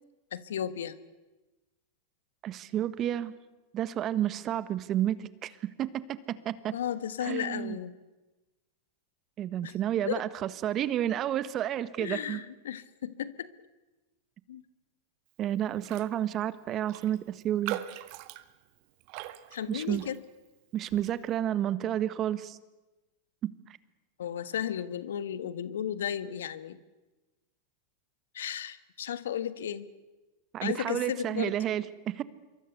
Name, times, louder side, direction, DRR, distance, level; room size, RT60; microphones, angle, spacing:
voice 1, 0.3-1.0 6.7-7.9 9.6-9.7 10.1-10.2 12.0-13.5 14.5-14.6 19.5-20.2 24.2-26.8 28.3-29.9 30.6-31.5, left 9 dB, 75° left, 14 dB, 1.4 m, -34 dB
voice 2, 2.4-3.3 3.7-5.5 5.8-6.7 7.2-7.8 9.4-12.4 15.4-17.8 19.7-20.1 20.7-22.6 30.5-32.2, right 11 dB, 35° right, 15 dB, 1.5 m, -31 dB
Raindrop, 15.8-16.1 16.4-16.5 16.9-20.5 20.9-21.2, right 15 dB, 55° right, 1.6 m, -41 dB
26.5 x 23.5 x 8.1 m, 1.1 s
hypercardioid pair, 100°, 0 cm